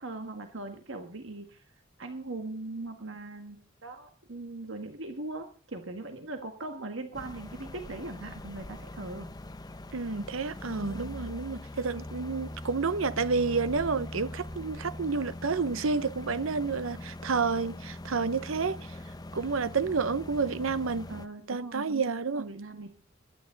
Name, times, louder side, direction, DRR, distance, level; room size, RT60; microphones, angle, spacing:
voice 1, 0.0-1.6 2.0-9.3 10.8-11.1 21.1-22.9, right 2 dB, 65° right, 1.7 m, -40 dB
sound 1, 7.1-21.3, left 1 dB, 20° left, 0.7 m, -42 dB
voice 2, 9.9-18.8 19.3-21.1 21.5-22.5, right 4 dB, 80° right, 0.8 m, -30 dB
21.5 x 10.5 x 3.9 m
head